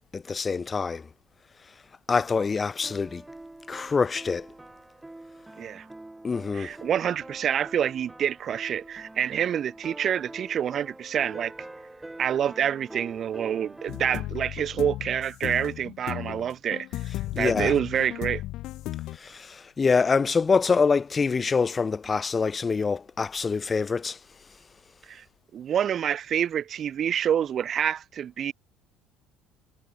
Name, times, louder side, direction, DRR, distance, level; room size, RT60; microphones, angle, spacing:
voice 1, 0.1-1.1 2.1-3.2 3.7-4.5 6.2-6.7 17.3-17.7 19.1-24.2, left 5 dB, 25° left, 1.4 m, -25 dB
sound 1, 2.8-14.2, right 2 dB, 10° right, 4.5 m, -45 dB
voice 2, 6.5-11.5 12.2-16.9 17.3-18.4 25.1-25.2 25.5-28.5, right 9 dB, 40° right, 0.9 m, -27 dB
sound 2, 13.9-19.2, left 16 dB, 65° left, 2.6 m, -35 dB
cardioid pair, 130°, 0 cm